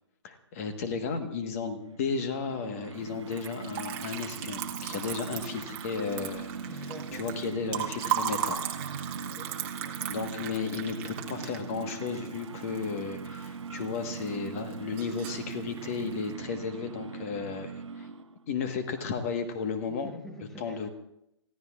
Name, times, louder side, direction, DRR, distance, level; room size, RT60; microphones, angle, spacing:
voice 1, 0.2-6.5 7.2-8.6 10.1-17.7 18.0-18.1 18.5-20.1 20.6-20.9, left 5 dB, 30° left, 7 dB, 1.4 m, -34 dB
sound 1, 1.8-18.5, right 5 dB, 85° right, 0.7 m, -41 dB
Liquid, 3.3-13.5 13.8-14.5 14.7-15.5, right 10 dB, 25° right, 1.3 m, -36 dB
voice 2, 6.6-7.3 9.2-9.6 19.9-20.9, left 1 dB, ahead, 4 dB, 0.9 m, -46 dB
28.0 x 15.0 x 2.5 m, 0.80 s
hypercardioid pair, 155°, 15 cm